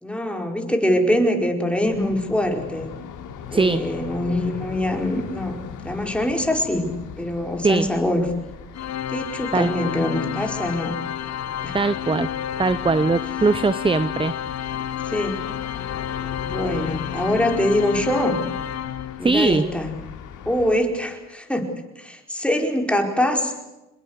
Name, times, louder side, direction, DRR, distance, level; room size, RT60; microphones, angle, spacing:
voice 1, 0.0-2.9 3.5-5.6 5.8-8.3 9.1-10.9 11.6-11.8 15.1-15.4 16.4-18.4 19.2-20.0 20.4-21.7 22.0-23.6, left 1 dB, 5° left, 3 dB, 4.8 m, -23 dB
sound 1, 1.8-20.7, left 7 dB, 85° left, 3.5 m, -39 dB
voice 2, 3.5-3.8 7.6-7.9 9.5-9.7 11.7-12.3 12.6-14.3 19.2-19.7, right 3 dB, 15° right, 15 dB, 0.8 m, -20 dB
Organ, 8.7-19.5, left 10 dB, 60° left, 1.1 m, -30 dB
26.5 x 21.5 x 8.1 m, 0.98 s
cardioid pair, 90°, 30 cm